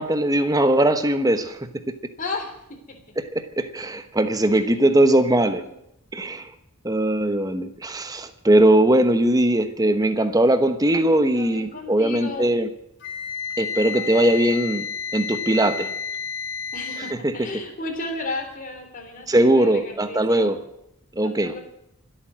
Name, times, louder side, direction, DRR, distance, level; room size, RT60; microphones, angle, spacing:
voice 1, 0.0-1.6 3.2-5.6 6.1-6.5 6.8-12.7 13.6-14.9 15.1-15.9 17.0-17.3 19.3-20.6 21.2-21.6, right 1 dB, 15° right, 9 dB, 1.1 m, -20 dB
voice 2, 2.2-2.5 5.4-5.7 11.3-12.5 13.7-14.2 15.6-15.9 16.7-20.5 21.2-21.6, left 2 dB, 35° left, 3 dB, 3.4 m, -34 dB
Wind instrument woodwind instrument, 13.0-17.2, left 6 dB, 55° left, 2.9 m, -31 dB
26.0 x 8.9 x 6.2 m, 0.79 s
head